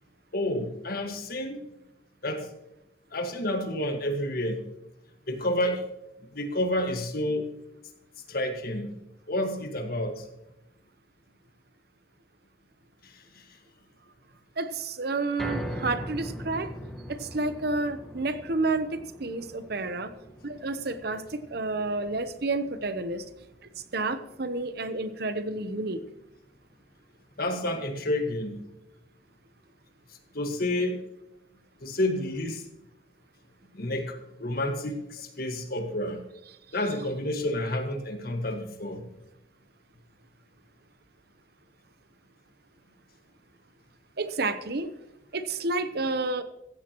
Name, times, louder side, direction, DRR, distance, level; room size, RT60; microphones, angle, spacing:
voice 1, 0.3-1.6 2.2-2.5 3.1-4.6 5.3-5.8 6.3-7.5 8.3-8.9 9.3-10.3 13.0-13.5 27.4-28.6 30.3-31.0 31.8-32.7 33.7-36.2 36.7-39.1, left 1 dB, 55° left, 5 dB, 1.7 m, -30 dB
voice 2, 14.6-16.7 17.1-20.1 20.4-23.2 23.9-26.0 44.2-44.9 45.3-46.4, right 3 dB, 60° right, 11 dB, 0.9 m, -30 dB
sound 1, 15.4-27.6 28.0-28.1 28.6-28.7, equal, ahead, 1.6 m, -42 dB
16.0 x 14.5 x 3.1 m, 0.88 s
head